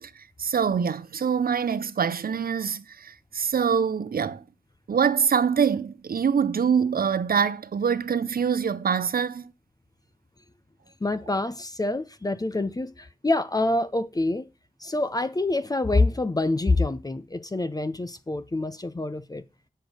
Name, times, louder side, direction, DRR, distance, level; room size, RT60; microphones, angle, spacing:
voice 1, 0.0-4.4 4.9-9.5, right 7 dB, 85° right, 0.7 m, -25 dB
voice 2, 11.0-14.4 14.8-19.4, left 2 dB, 25° left, 0.7 m, -26 dB
8.2 x 6.7 x 6.4 m
wide cardioid pair, 85°, 15 cm